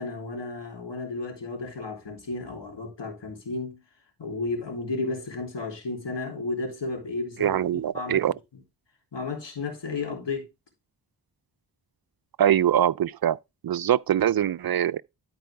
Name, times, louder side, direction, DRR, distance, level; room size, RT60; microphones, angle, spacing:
voice 1, 0.0-3.8 4.2-8.3 9.1-10.5, left 3 dB, 70° left, 3.2 m, -33 dB
voice 2, 7.4-8.3 12.4-13.4 13.6-15.0, right 10 dB, 55° right, 0.5 m, -23 dB
13.0 x 4.7 x 3.4 m
cardioid pair, 50°, 44 cm